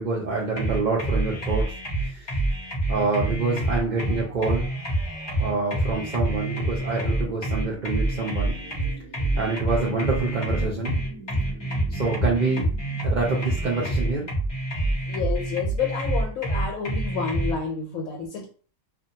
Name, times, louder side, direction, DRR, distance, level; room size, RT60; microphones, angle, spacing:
voice 1, 0.0-1.7 2.0-2.4 2.9-4.7 5.4-8.6 9.4-11.0 11.9-12.7 13.0-14.3, right 3 dB, 75° right, -4 dB, 0.4 m, -26 dB
sound 1, 0.6-17.5, right 1 dB, 35° left, 0.4 m, -27 dB
sound 2, 3.3-15.1, right 2 dB, 30° right, 0.8 m, -46 dB
voice 2, 15.1-18.5, left 6 dB, 75° left, 0 dB, 1.0 m, -30 dB
2.5 x 2.1 x 2.7 m, 0.40 s
omnidirectional pair, 1.5 m